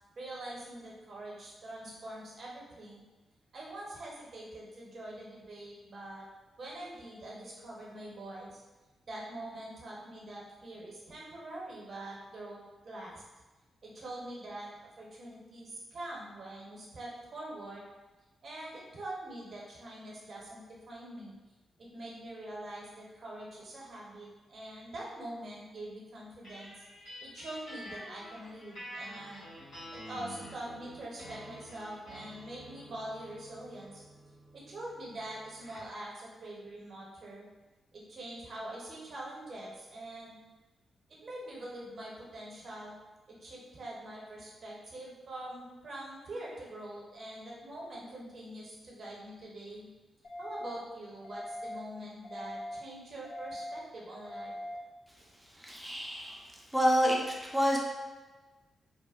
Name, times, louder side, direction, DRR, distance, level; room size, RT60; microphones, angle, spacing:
voice 1, 0.2-3.0 3.5-6.3 6.6-8.6 9.1-13.2 13.8-14.7 15.0-17.9 18.4-21.3 21.8-26.7 27.2-29.4 29.9-34.0 34.5-37.5 37.9-40.4 41.2-42.9 43.4-49.9 50.4-54.5, right 1 dB, 60° right, -4 dB, 0.7 m, -44 dB
sound 1, 26.4-36.0, equal, 85° left, 1.0 m, -48 dB
sound 2, 50.2-50.7 51.2-51.7 52.2-52.7 53.2-53.7 54.2-54.7, left 1 dB, 60° left, 0.6 m, -41 dB
voice 2, 55.6-56.4 56.7-57.2 57.4-57.8, equal, ahead, -2 dB, 0.6 m, -27 dB
2.7 x 2.0 x 2.3 m, 1.2 s
supercardioid pair, 50°, 0 cm